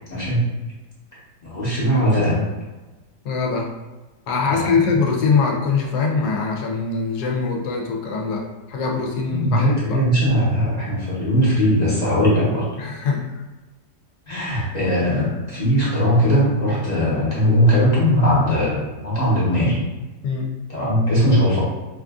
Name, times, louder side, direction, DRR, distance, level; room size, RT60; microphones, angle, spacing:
voice 1, 0.1-0.4 1.4-2.4 4.4-4.7 9.3-12.6 14.3-19.8 20.7-21.6, equal, 35° left, -8 dB, 0.8 m, -19 dB
voice 2, 3.2-3.7 4.3-10.0 12.8-13.4 14.8-14.9 20.2-20.5, left 4 dB, 75° left, 1 dB, 1.1 m, -23 dB
5.1 x 2.4 x 2.3 m, 1.2 s
omnidirectional pair, 1.8 m